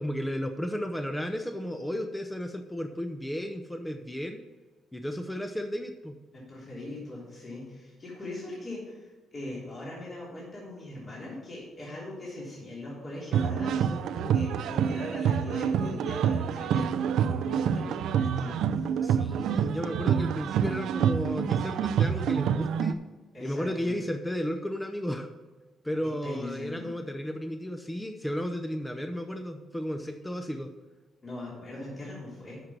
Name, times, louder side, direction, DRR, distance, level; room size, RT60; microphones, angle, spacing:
voice 1, 0.0-4.4 4.9-6.2 19.0-23.0 23.4-25.3 25.8-30.7, equal, 10° left, 6 dB, 0.6 m, -33 dB
voice 2, 6.3-16.9 17.2-18.9 23.3-24.0 26.0-26.9 31.2-32.6, left 2 dB, 35° left, -5 dB, 3.2 m, -40 dB
sound 1, 13.3-22.9, right 8 dB, 80° right, 0.4 m, -27 dB
7.9 x 6.0 x 5.9 m, 1.3 s
cardioid pair, 90°, 0 cm